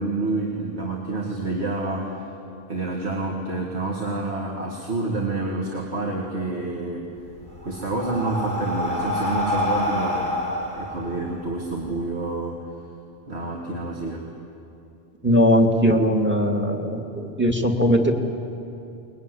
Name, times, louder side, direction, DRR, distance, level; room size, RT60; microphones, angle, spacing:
voice 1, 0.0-2.2 2.7-7.1 7.6-10.4 10.8-12.6 13.3-14.3, right 2 dB, 85° right, -1 dB, 2.4 m, -28 dB
Breathing, 7.2-11.9, left 1 dB, 50° right, 4.5 m, -27 dB
voice 2, 15.2-18.1, equal, 10° right, 3 dB, 2.1 m, -19 dB
22.5 x 21.0 x 9.9 m, 2.7 s
omnidirectional pair, 1.1 m